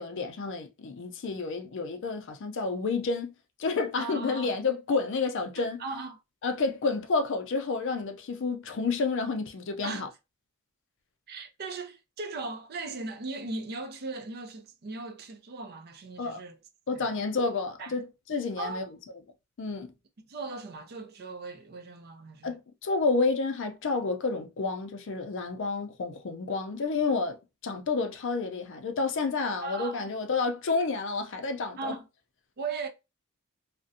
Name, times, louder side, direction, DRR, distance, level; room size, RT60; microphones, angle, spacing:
voice 1, 0.0-3.3 3.6-5.8 6.4-10.1 16.2-16.4 16.9-18.8 19.6-19.9 22.4-27.4 27.6-32.0, left 4 dB, 60° left, 0.5 m, -30 dB
voice 2, 4.0-4.5 5.6-6.2 9.8-10.1 11.3-16.6 16.9-17.1 17.8-17.9 18.6-18.9 20.3-22.6 29.6-30.1 31.8-32.1 32.6-32.9, right 3 dB, 50° right, 0.5 m, -38 dB
2.5 x 2.1 x 2.5 m
head